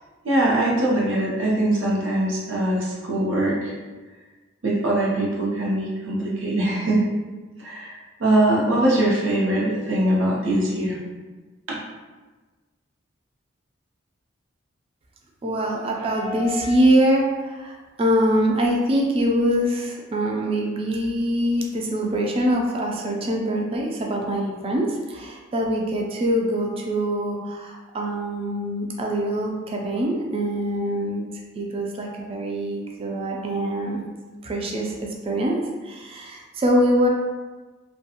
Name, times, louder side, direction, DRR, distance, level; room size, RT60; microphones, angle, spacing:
voice 1, 0.2-3.7 4.6-7.0 7.6-7.9 8.2-11.0 11.7-11.8, right 1 dB, 85° right, -4 dB, 0.7 m, -22 dB
voice 2, 15.4-31.3 31.6-34.0 34.4-34.9 35.2-37.1, equal, 30° right, 0 dB, 0.3 m, -24 dB
2.3 x 2.2 x 2.8 m, 1.3 s
head